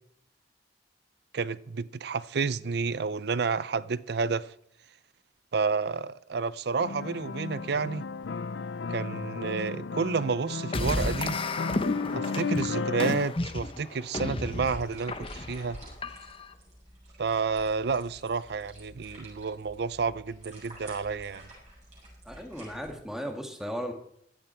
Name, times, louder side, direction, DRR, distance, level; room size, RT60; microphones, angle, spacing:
voice 1, 1.3-4.5 5.5-8.1 8.9-11.4 12.1-15.8 17.2-21.4, right 5 dB, 65° right, 0.5 m, -30 dB
sound 1, 6.8-13.3, left 4 dB, 85° left, 0.5 m, -34 dB
sound 2, 10.7-16.5, left 2 dB, 30° left, 0.8 m, -33 dB
sound 3, 14.5-22.9, right 1 dB, 40° right, 7.4 m, -49 dB
voice 2, 22.3-23.9, equal, 5° right, 1.8 m, -36 dB
16.5 x 12.0 x 4.5 m
head